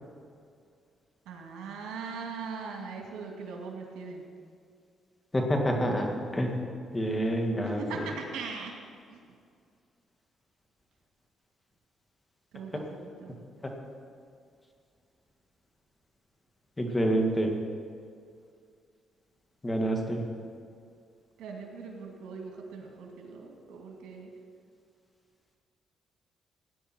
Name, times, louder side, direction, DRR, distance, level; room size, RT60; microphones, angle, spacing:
voice 1, 1.3-4.2 7.6-8.7 9.1-9.2 12.5-13.3 21.4-24.3, right 5 dB, 85° right, 1 dB, 2.4 m, -40 dB
voice 2, 5.3-6.6 6.9-8.1 16.8-17.6 19.6-20.2, equal, 15° left, 2 dB, 2.2 m, -27 dB
17.5 x 10.0 x 4.5 m, 2.2 s
cardioid pair, 90°, 0 cm